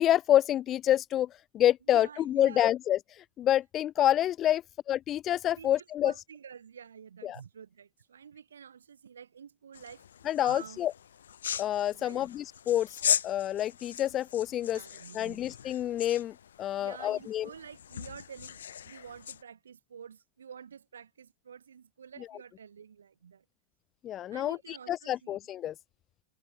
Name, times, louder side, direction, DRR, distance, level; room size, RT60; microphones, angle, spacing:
voice 1, 0.0-6.1 7.2-7.4 10.2-10.9 11.6-14.8 15.1-17.5 24.0-25.7, left 12 dB, 30° left, 0.4 m, -28 dB
voice 2, 1.8-2.7 5.5-10.0 10.4-10.8 11.9-12.3 14.6-15.4 16.8-18.6 18.8-23.4 24.3-25.5, right 7 dB, 70° right, 7.8 m, -48 dB
sound 1, 9.7-19.4, left 9 dB, 65° left, 1.7 m, -38 dB
figure-of-eight pair, 90°, 0 cm